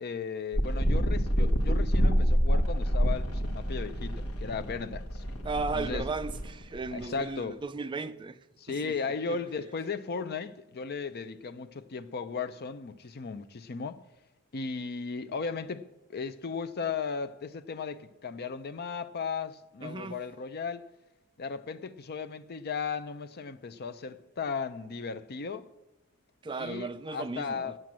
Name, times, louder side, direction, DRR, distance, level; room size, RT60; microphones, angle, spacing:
voice 1, 0.0-5.2 5.7-6.0 6.9-7.6 8.6-14.0 14.5-20.8 21.4-25.7 26.6-27.8, left 5 dB, 45° left, 0.5 m, -36 dB
sound 1, 0.5-7.2, equal, 85° left, 1.4 m, -27 dB
voice 2, 5.4-8.4 8.7-9.0 9.3-9.4 19.8-20.2 26.4-27.7, right 3 dB, 20° right, 0.4 m, -35 dB
9.4 x 7.6 x 7.5 m
head